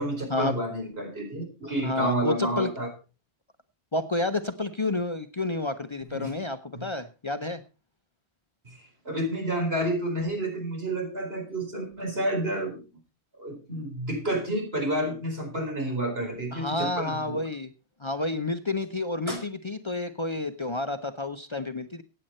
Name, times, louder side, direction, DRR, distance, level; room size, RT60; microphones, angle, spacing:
voice 1, 0.0-2.9 6.1-6.3 6.7-6.9 8.6-12.8 13.4-17.4 19.3-19.4, right 1 dB, 70° right, 3 dB, 4.7 m, -30 dB
voice 2, 1.8-2.7 3.9-7.6 16.5-17.7 18.0-22.0, left 2 dB, 30° left, 9 dB, 0.7 m, -30 dB
15.5 x 9.1 x 4.3 m, 0.31 s
omnidirectional pair, 1.1 m